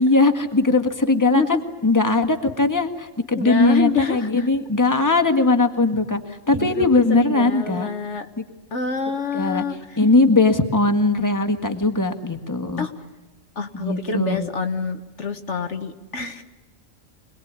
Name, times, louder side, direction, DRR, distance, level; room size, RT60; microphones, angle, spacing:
voice 1, 0.0-7.9 8.4-8.5 9.3-9.6 10.0-12.9 13.7-14.5, left 3 dB, 15° left, 7 dB, 1.8 m, -19 dB
voice 2, 3.3-4.5 6.5-8.3 8.7-10.0 12.8-13.0 13.6-16.4, left 5 dB, 65° left, 7 dB, 1.6 m, -27 dB
26.0 x 20.5 x 9.7 m, 1.2 s
omnidirectional pair, 1.3 m